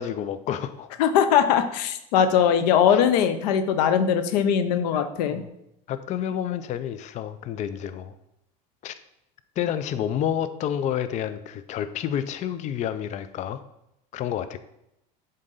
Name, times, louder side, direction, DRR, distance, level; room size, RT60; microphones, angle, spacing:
voice 1, 0.0-0.9 2.9-3.0 5.3-5.5 5.9-8.1 8.8-8.9 9.6-13.6 14.1-14.6, left 9 dB, 35° left, 12 dB, 0.4 m, -29 dB
voice 2, 1.0-5.4, left 8 dB, 90° left, 10 dB, 0.6 m, -21 dB
7.3 x 3.9 x 4.0 m, 0.83 s
supercardioid pair, 115°, 20 cm